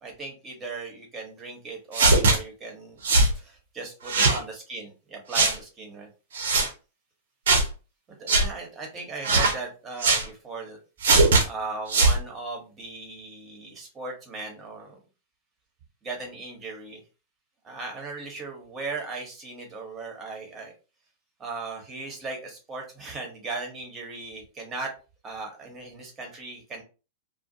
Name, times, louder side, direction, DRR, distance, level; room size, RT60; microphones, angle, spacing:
voice 1, 0.0-3.0 3.3-6.1 8.2-10.8 11.5-15.0 16.0-17.0 17.6-20.7 21.4-24.9 25.2-26.8, right 3 dB, 25° right, 2 dB, 1.1 m, -37 dB
sound 1, 1.9-2.4 3.0-3.3 4.1-4.4 5.3-5.6 6.3-6.7 7.5-7.7 8.3-8.5 9.2-9.6 10.0-10.2 11.0-11.4 11.9-12.2, right 3 dB, 65° right, 0.7 m, -19 dB
2.4 x 2.1 x 2.7 m, 0.32 s
figure-of-eight pair, 100°, 0 cm